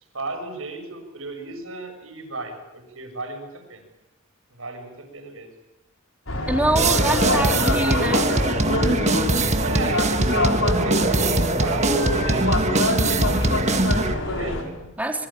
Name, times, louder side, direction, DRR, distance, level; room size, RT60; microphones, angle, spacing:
voice 1, 0.1-3.8 4.5-5.5 9.6-14.7, right 2 dB, 80° right, 4 dB, 7.5 m, -34 dB
sound 1, 6.3-14.6, left 2 dB, 85° left, 5.9 m, -26 dB
voice 2, 6.5-8.3 14.6-15.3, right 1 dB, 10° right, 3 dB, 3.5 m, -25 dB
sound 2, 6.8-14.1, right 2 dB, 35° right, 1.5 m, -22 dB
27.0 x 23.0 x 9.1 m, 0.92 s
head